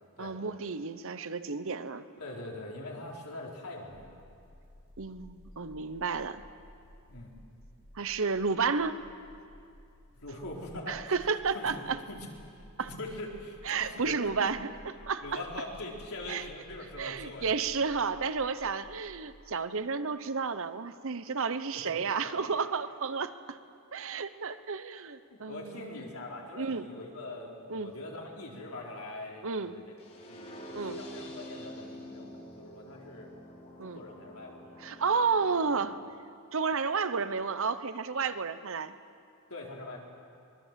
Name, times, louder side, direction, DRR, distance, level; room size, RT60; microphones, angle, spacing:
voice 1, 0.2-2.0 5.0-6.4 7.9-9.0 10.9-12.0 12.8-12.9 13.6-14.6 15.1-15.4 16.3-16.4 17.0-23.6 23.9-26.0 26.5-26.9 27.7-27.9 29.4-29.8 30.7-31.0 33.8-34.0 34.8-36.0 36.5-38.9, right 5 dB, 65° right, 12 dB, 0.9 m, -31 dB
voice 2, 2.2-4.2 7.1-7.3 10.1-11.1 11.5-12.3 12.8-14.0 14.4-14.5 15.2-17.5 21.7-22.0 25.3-29.9 30.3-33.3 33.8-34.6 39.5-40.0, left 2 dB, 75° left, -1 dB, 4.2 m, -42 dB
sound 1, 3.9-19.1, equal, 25° right, 5.1 m, -54 dB
sound 2, 30.0-36.0, left 1 dB, 30° left, 3.2 m, -47 dB
24.5 x 21.0 x 7.5 m, 2.4 s
head